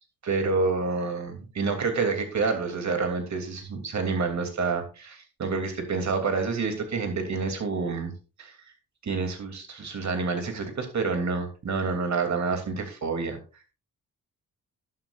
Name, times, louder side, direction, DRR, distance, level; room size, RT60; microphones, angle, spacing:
voice 1, 0.2-8.1 8.4-8.5 9.0-13.4, right 4 dB, 55° right, 6 dB, 2.8 m, -28 dB
12.0 x 11.5 x 2.5 m, 0.33 s
cardioid pair, 110°, 34 cm